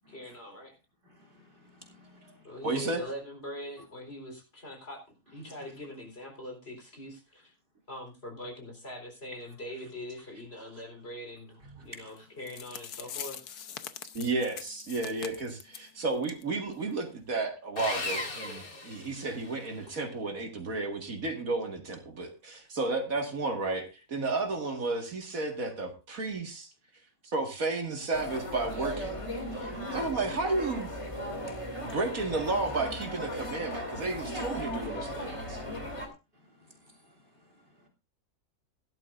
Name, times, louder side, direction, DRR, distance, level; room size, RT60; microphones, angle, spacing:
voice 1, 0.1-0.8 2.4-5.0 5.3-7.5 7.9-13.4, left 1 dB, 40° left, 4.4 m, -42 dB
voice 2, 1.0-2.6 3.8-3.9 5.4-5.6 9.4-9.5 11.8-12.3 18.9-19.4 31.5-32.0 36.3-37.9, equal, 35° right, 2.7 m, -56 dB
voice 3, 2.6-3.0 14.1-26.7 27.2-29.2 29.6-31.1 31.8-35.6, right 3 dB, 65° right, 2.3 m, -32 dB
sound 1, 12.2-12.3 12.5-15.9 16.2-16.4 16.7-16.8 17.3-17.4, left 9 dB, 90° left, 1.4 m, -43 dB
Sawing, 17.8-19.7, left 2 dB, 65° left, 3.1 m, -36 dB
sound 2, 28.1-36.1, equal, 20° left, 2.6 m, -37 dB
16.5 x 12.0 x 2.5 m
omnidirectional pair, 1.6 m